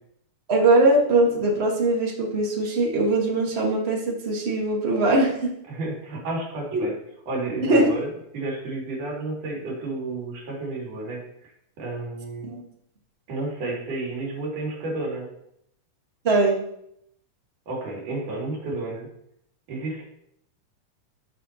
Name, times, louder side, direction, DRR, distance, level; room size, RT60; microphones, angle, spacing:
voice 1, 0.5-5.5 6.7-6.8 7.7-7.9 12.4-12.6 16.2-16.6, right 2 dB, 35° right, -1 dB, 1.0 m, -21 dB
voice 2, 5.7-7.0 7.3-11.5 11.8-12.5 13.3-15.3 17.7-19.1 19.7-20.0, right 2 dB, 90° right, -3 dB, 4.1 m, -31 dB
15.0 x 6.2 x 2.8 m, 0.75 s
omnidirectional pair, 3.6 m